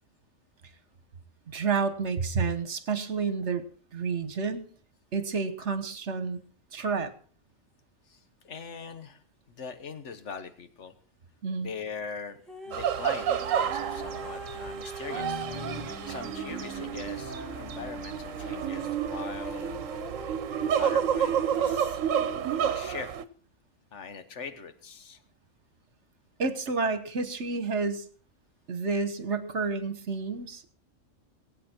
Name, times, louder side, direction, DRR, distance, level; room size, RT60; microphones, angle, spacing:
voice 1, 1.5-3.6 3.9-4.6 5.1-6.4 6.7-7.1 11.4-11.7 26.4-28.1 28.7-30.7, right 4 dB, 65° right, 10 dB, 1.5 m, -30 dB
voice 2, 8.1-10.9 11.6-12.4 12.6-15.5 16.0-19.8 20.7-22.0 22.3-23.1 23.9-25.2, left 5 dB, 65° left, 9 dB, 1.5 m, -41 dB
sound 1, 12.5-21.6 22.2-22.3, right 1 dB, ahead, 1.6 m, -43 dB
sound 2, 12.7-23.2, right 9 dB, 85° right, 1.2 m, -30 dB
sound 3, 15.1-21.4, left 2 dB, 40° left, 4.5 m, -44 dB
21.5 x 8.6 x 4.4 m, 0.43 s
omnidirectional pair, 1.3 m